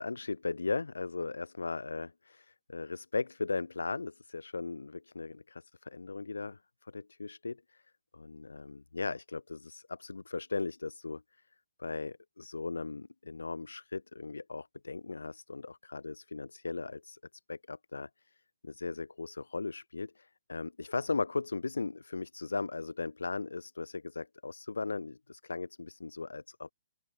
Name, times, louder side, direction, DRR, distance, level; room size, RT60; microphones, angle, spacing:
voice 1, 0.0-6.6 6.9-7.8 8.1-11.2 11.8-17.2 17.5-18.1 18.6-26.7, left 3 dB, 90° left, 0.8 m, -37 dB
open air
hypercardioid pair, 135°, 0 cm